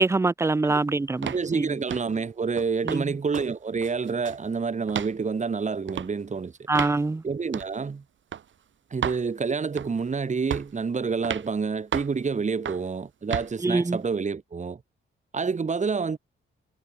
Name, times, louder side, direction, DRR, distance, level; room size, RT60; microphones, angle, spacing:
voice 1, 0.0-1.7 2.9-3.0 6.7-7.2 13.6-14.0, right 3 dB, 15° right, 0.5 m, -24 dB
sound 1, 1.2-1.5 1.9-2.1 2.6-3.0 3.3-3.5 3.8-4.4 4.9-5.1 5.9-6.1 6.7-7.0 7.5-7.7 8.3-8.4 9.0-9.2 9.8-10.1 10.5-10.8 11.2-11.5 11.9-12.2 12.7-12.9 13.3-13.5, right 9 dB, 65° right, 2.0 m, -32 dB
voice 2, 1.3-6.5 7.2-8.0 8.9-14.8 15.3-16.2, right 5 dB, 35° right, 5.3 m, -28 dB
wide cardioid pair, 140°, 21 cm